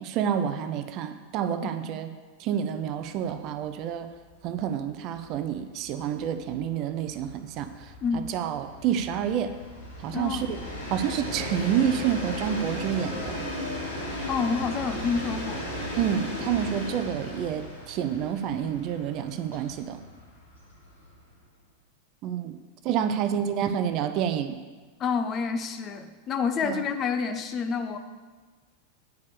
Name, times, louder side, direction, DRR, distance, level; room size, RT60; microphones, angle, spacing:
voice 1, 0.0-2.1 2.4-4.1 4.4-7.9 8.3-9.5 10.0-10.6 10.9-13.4 16.0-20.0 22.2-22.6 22.8-24.6 26.6-26.8, right 9 dB, 40° right, 10 dB, 0.6 m, -28 dB
Train, 3.2-3.3 3.6-3.7 4.0-21.4, left 1 dB, 70° left, 2.5 m, -36 dB
voice 2, 8.0-8.3 10.1-10.6 14.3-15.7 25.0-28.0, left 5 dB, 30° left, 8 dB, 0.7 m, -28 dB
9.2 x 5.3 x 6.8 m, 1.4 s
figure-of-eight pair, 90°, 0 cm